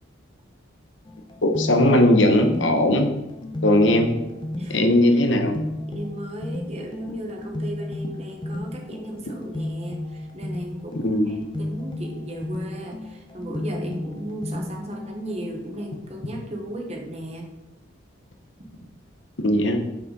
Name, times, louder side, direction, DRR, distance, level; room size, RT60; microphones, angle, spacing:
sound 1, 1.1-15.9, left 1 dB, 25° left, 0.7 m, -34 dB
voice 1, 1.4-3.1 3.6-4.1 4.7-5.6 11.0-11.4 19.4-19.8, left 1 dB, 70° left, 5 dB, 1.0 m, -18 dB
voice 2, 4.5-4.9 5.1-5.2 5.9-17.5, right 1 dB, 30° right, 1 dB, 1.2 m, -35 dB
7.1 x 6.0 x 4.1 m, 0.95 s
head